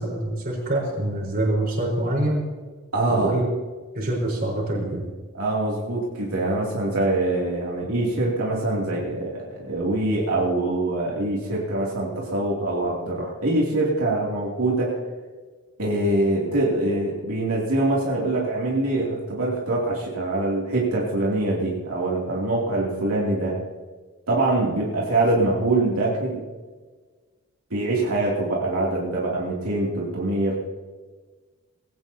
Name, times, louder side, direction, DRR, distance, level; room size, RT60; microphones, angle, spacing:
voice 1, 0.0-2.4 3.1-3.4 3.9-5.0, right 1 dB, 45° right, -1 dB, 4.3 m, -25 dB
voice 2, 2.9-3.4 5.3-15.0 15.8-23.6 24.3-26.4 27.7-30.6, right 2 dB, 80° right, -5 dB, 2.7 m, -24 dB
20.5 x 16.0 x 2.8 m, 1.4 s
head